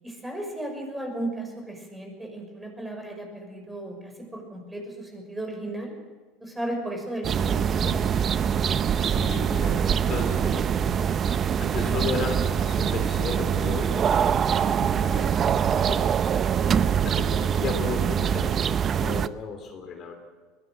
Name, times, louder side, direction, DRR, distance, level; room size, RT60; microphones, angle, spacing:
voice 1, 0.0-5.9 6.4-8.0 11.5-12.3, right 1 dB, 10° right, 2 dB, 6.3 m, -35 dB
sound 1, 7.2-19.3, right 8 dB, 35° right, 0.7 m, -24 dB
voice 2, 9.0-11.1 11.6-16.5 17.0-20.2, left 5 dB, 40° left, 5 dB, 3.1 m, -35 dB
22.0 x 17.0 x 7.9 m, 1.4 s
supercardioid pair, 120°, 0 cm